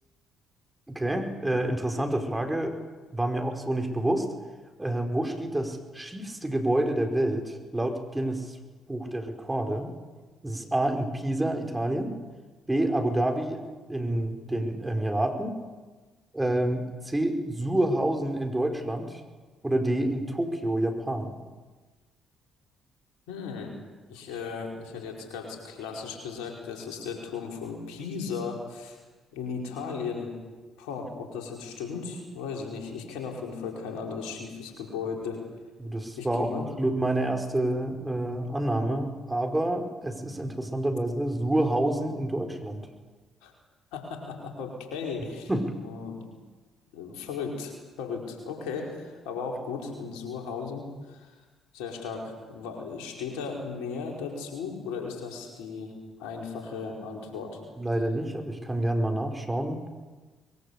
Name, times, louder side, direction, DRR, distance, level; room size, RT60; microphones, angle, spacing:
voice 1, 0.9-2.7 3.1-4.3 4.8-8.6 8.9-9.9 10.4-12.1 12.7-13.6 13.9-15.5 16.3-19.2 19.6-21.4 35.8-42.8 45.5-45.6 57.8-59.8, right 1 dB, 15° right, 4 dB, 5.0 m, -28 dB
voice 2, 23.3-23.7 24.1-29.0 29.3-30.3 30.8-35.4 36.2-36.7 43.4-43.5 43.9-45.5 45.8-46.3 46.9-51.4 51.7-55.9 56.2-57.6, left 5 dB, 75° left, 1 dB, 5.0 m, -36 dB
23.0 x 22.0 x 8.4 m, 1.3 s
hypercardioid pair, 50°, 0 cm